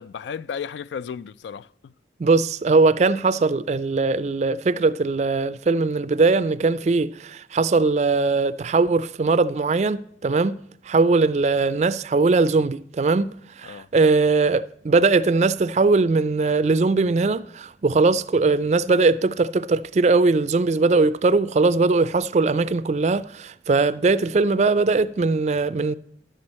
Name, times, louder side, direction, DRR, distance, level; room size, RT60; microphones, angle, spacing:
voice 1, 0.0-1.9 13.7-13.9, left 7 dB, 80° left, 0.3 m, -34 dB
voice 2, 2.2-10.6 10.8-26.0, right 3 dB, 40° right, 0.3 m, -20 dB
11.0 x 7.9 x 4.2 m
head